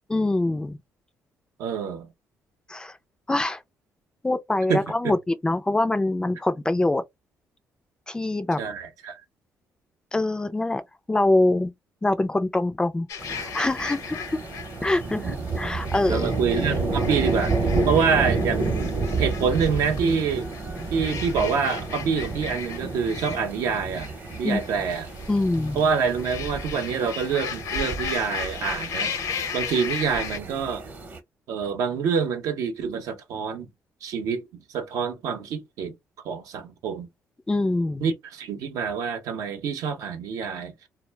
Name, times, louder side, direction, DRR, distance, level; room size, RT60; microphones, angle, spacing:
voice 1, 0.1-0.8 2.7-3.0 3.3-3.6 4.2-7.0 8.1-8.6 10.1-10.8 11.1-11.7 12.0-13.1 13.3-14.4 14.8-16.3 24.4-24.6 25.3-25.8 37.5-38.1, left 2 dB, 15° left, 0.3 m, -24 dB
voice 2, 1.6-2.1 4.7-5.1 8.6-9.2 15.0-15.3 16.1-17.6 17.9-18.9 19.2-20.5 20.9-24.1 24.4-25.1 25.7-29.1 29.5-30.9 31.5-33.7 34.0-35.9 36.2-37.1 38.0-40.7, right 6 dB, 80° right, 0.7 m, -26 dB
sound 1, 13.1-30.4, left 7 dB, 75° left, 0.7 m, -36 dB
sound 2, 13.2-31.2, right 3 dB, 35° right, 0.7 m, -30 dB
2.2 x 2.1 x 3.1 m
cardioid pair, 105°, 6 cm